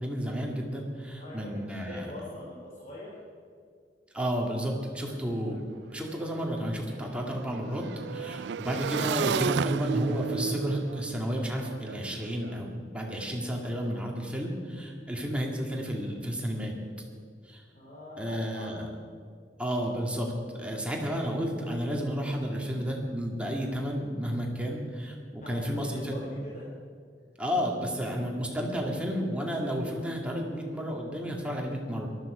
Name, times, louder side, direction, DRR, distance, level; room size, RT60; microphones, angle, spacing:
voice 1, 0.0-2.0 4.1-5.6 5.9-16.7 17.4-17.6 18.2-18.9 19.6-26.2 27.4-32.1, equal, 5° right, -1 dB, 2.1 m, -32 dB
voice 2, 1.2-3.2 17.7-18.7 25.4-26.7, left 1 dB, 45° left, -6 dB, 3.4 m, -43 dB
Motorcycle / Engine, 5.1-5.2 5.4-12.6, right 7 dB, 70° right, 0.3 m, -34 dB
18.5 x 13.0 x 5.0 m, 2.1 s
head